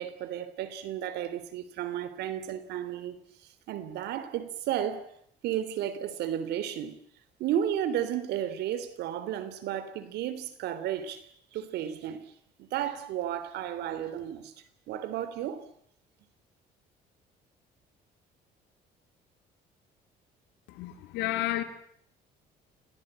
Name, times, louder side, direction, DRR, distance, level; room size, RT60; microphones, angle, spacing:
voice 1, 0.0-3.2 3.7-5.1 5.4-7.0 7.4-12.3 12.6-14.5 14.9-15.6, right 10 dB, 80° right, 3.3 m, -33 dB
voice 2, 20.7-21.6, left 14 dB, 90° left, 3.5 m, -31 dB
28.0 x 18.5 x 8.9 m
cardioid pair, 110°, 17 cm